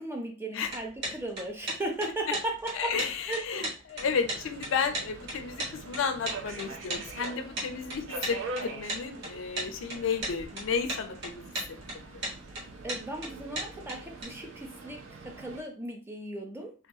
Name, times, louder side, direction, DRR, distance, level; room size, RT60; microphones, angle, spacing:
voice 1, 0.0-3.0 3.3-3.7 12.8-16.7, right 1 dB, 10° right, 1 dB, 0.5 m, -36 dB
sound 1, 0.6-14.2, right 1 dB, 60° right, 1.0 m, -36 dB
voice 2, 2.7-11.4 11.7-11.8, left 6 dB, 80° left, 7 dB, 0.4 m, -32 dB
Subway metro underground, 4.0-15.6, right 3 dB, 80° right, 0.5 m, -44 dB
2.3 x 2.3 x 2.6 m, 0.33 s
head